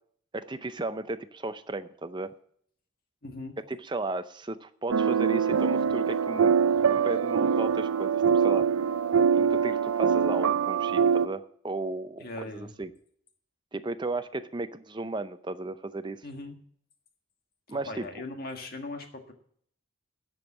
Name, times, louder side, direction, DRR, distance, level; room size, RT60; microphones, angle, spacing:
voice 1, 0.3-2.3 3.7-6.5 6.9-8.7 9.3-12.9 13.7-16.2 17.7-18.2, right 2 dB, 20° right, 11 dB, 0.5 m, -35 dB
voice 2, 3.2-3.6 12.2-12.7 16.2-16.6 17.7-19.3, left 2 dB, 45° left, 4 dB, 1.6 m, -39 dB
sound 1, 4.9-11.3, right 6 dB, 85° right, 0.5 m, -24 dB
13.0 x 5.4 x 8.5 m, 0.63 s
head